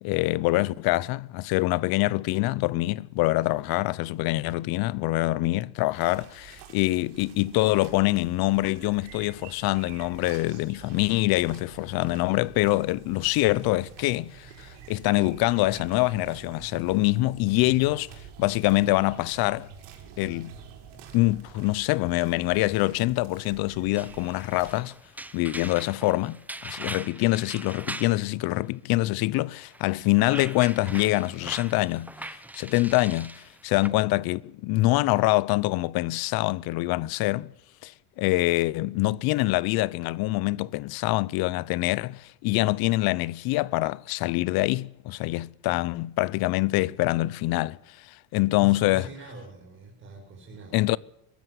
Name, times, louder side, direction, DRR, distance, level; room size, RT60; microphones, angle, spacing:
voice 1, 0.0-18.1 18.4-19.7 20.2-20.5 21.1-24.9 25.3-37.5 37.8-37.9 38.2-47.8 48.1-49.1 50.7-51.0, left 19 dB, 60° left, 0.8 m, -25 dB
sound 1, 5.9-24.8, right 8 dB, 85° right, 6.2 m, -47 dB
sound 2, 24.0-28.2 29.6-33.9, right 1 dB, 5° right, 0.7 m, -41 dB
voice 2, 48.6-50.9, right 1 dB, 30° right, 5.0 m, -43 dB
22.5 x 13.5 x 9.5 m
cardioid pair, 165°, 42 cm